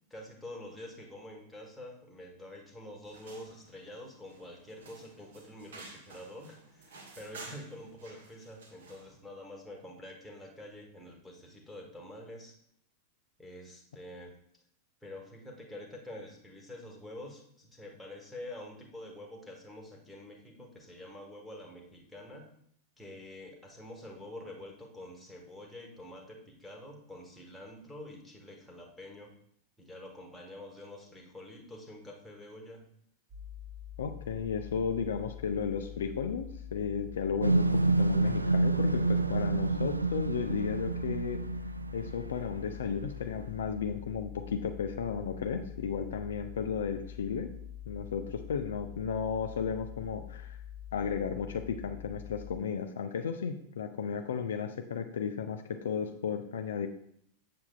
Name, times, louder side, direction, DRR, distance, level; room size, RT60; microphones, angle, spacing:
voice 1, 0.1-12.6 13.4-14.4 15.0-22.5 23.0-29.3 29.8-32.9, left 1 dB, 5° left, -1 dB, 1.3 m, -47 dB
sound 1, 3.0-9.2, right 3 dB, 65° right, 1.6 m, -52 dB
sound 2, 33.3-52.6, left 10 dB, 25° right, 1.0 m, -45 dB
voice 2, 34.0-41.4 41.9-47.5 47.9-50.6 50.9-56.9, left 6 dB, 65° left, 6 dB, 0.4 m, -34 dB
sound 3, 37.4-42.7, right 3 dB, 85° right, 0.3 m, -28 dB
7.5 x 7.0 x 2.3 m, 0.68 s
figure-of-eight pair, 90°, 0 cm